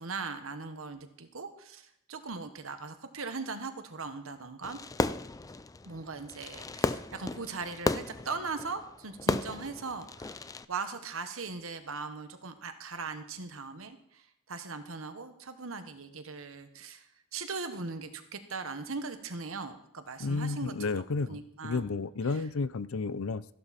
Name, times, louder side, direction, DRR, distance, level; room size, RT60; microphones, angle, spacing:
voice 1, 0.0-4.8 5.8-20.7 21.3-21.9 22.3-22.4, right 4 dB, 70° right, 8 dB, 1.4 m, -39 dB
Fireworks, 4.6-10.6, left 2 dB, 15° left, 0.4 m, -34 dB
voice 2, 20.2-23.4, left 4 dB, 70° left, 17 dB, 0.6 m, -32 dB
14.5 x 12.0 x 4.3 m, 0.75 s
head